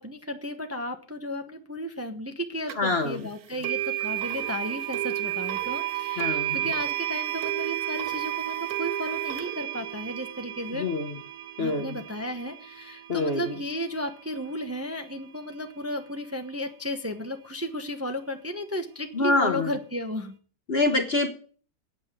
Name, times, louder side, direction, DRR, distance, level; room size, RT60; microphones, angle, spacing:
voice 1, 0.0-10.9 11.6-20.3, equal, 10° right, 6 dB, 0.9 m, -34 dB
sound 1, 2.7-2.8 3.6-14.6, right 14 dB, 65° right, 1.3 m, -32 dB
voice 2, 2.8-3.3 6.2-6.6 10.8-11.2 11.6-12.0 13.1-13.5 19.1-19.7 20.7-21.3, left 2 dB, 40° left, 7 dB, 1.1 m, -25 dB
8.9 x 8.0 x 9.0 m, 0.43 s
omnidirectional pair, 1.9 m